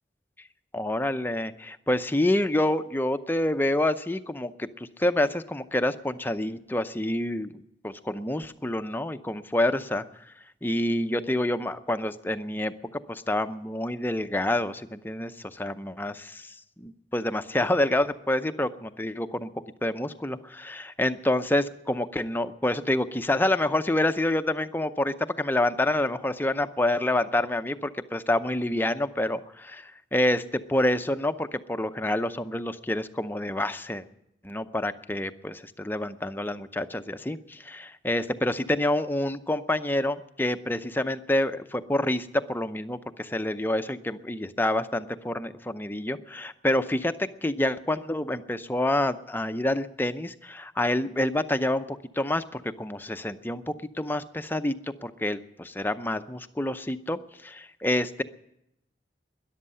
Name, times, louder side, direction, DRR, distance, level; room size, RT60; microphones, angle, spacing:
voice 1, 0.7-7.5 7.8-10.3 10.6-19.5 19.8-34.0 34.4-54.7 55.0-58.2, left 1 dB, 10° left, 9 dB, 0.6 m, -28 dB
13.5 x 11.0 x 9.7 m, 0.82 s
head